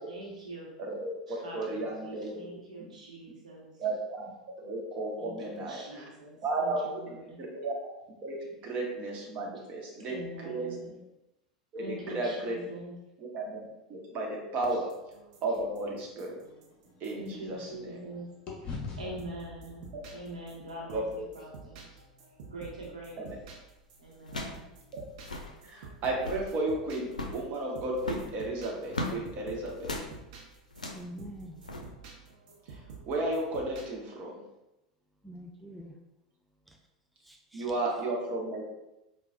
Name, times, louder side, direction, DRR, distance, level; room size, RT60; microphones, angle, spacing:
voice 1, 0.0-0.7 1.3-3.9 5.2-7.4 10.0-10.9 11.8-13.0 14.7-14.8 17.2-18.3 18.6-18.7 19.0-22.0 22.5-23.3 24.0-24.6, right 1 dB, 80° right, -3 dB, 0.9 m, -44 dB
voice 2, 0.8-2.4 3.8-4.3 4.6-6.0 6.4-6.8 7.4-7.7 8.2-10.2 10.4-10.7 11.7-12.6 13.2-13.6 13.9-14.9 15.4-16.4 17.0-18.0 20.9-21.0 23.2-23.4 25.6-29.9 32.7-34.4 37.5-38.6, right 2 dB, 40° right, -1 dB, 1.0 m, -33 dB
sound 1, 14.7-18.6 19.2-33.9, right 4 dB, 60° right, 0.6 m, -51 dB
sound 2, 15.8-18.1 18.5-22.7, left 4 dB, 35° left, 0.9 m, -46 dB
sound 3, 23.3-23.5 24.2-24.7 24.9-25.0 25.2-25.5 26.0-26.5 27.1-27.4 28.0-29.2 29.8-30.1 30.7-31.1 31.6-31.8, left 2 dB, 85° left, 0.4 m, -37 dB
voice 3, 30.9-31.6 35.2-36.0 36.7-36.8 37.2-38.0, equal, ahead, 1 dB, 0.3 m, -46 dB
4.7 x 2.2 x 2.5 m, 0.92 s
figure-of-eight pair, 85°, 4 cm